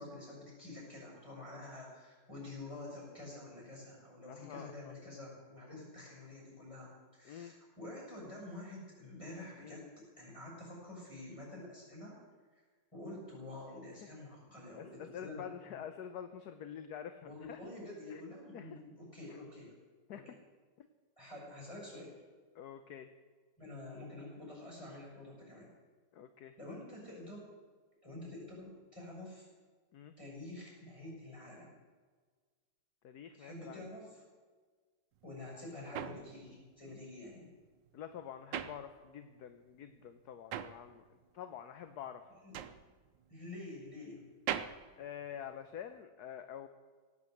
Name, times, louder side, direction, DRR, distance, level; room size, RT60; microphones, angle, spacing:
voice 1, 0.0-12.2 12.9-15.8 17.2-19.7 20.1-20.2 21.2-22.1 23.6-25.7 26.6-27.5 28.0-29.5 30.2-31.7 33.4-34.2 35.2-37.5 42.4-42.6 43.3-44.2, left 2 dB, 15° left, -4 dB, 6.5 m, -48 dB
voice 2, 4.3-4.9 7.2-7.5 9.6-9.8 14.0-14.1 14.8-17.6 18.1-18.2 18.5-18.8 19.3-19.4 20.1-20.4 20.8-20.9 22.5-23.1 26.1-26.8 29.9-30.1 33.0-33.8 37.9-41.0 41.3-42.3 45.0-46.7, left 9 dB, 65° left, 9 dB, 1.2 m, -47 dB
sound 1, 35.2-39.5 39.8-46.0, right 9 dB, 75° right, 1.4 m, -43 dB
17.5 x 9.3 x 7.8 m, 1.5 s
omnidirectional pair, 2.0 m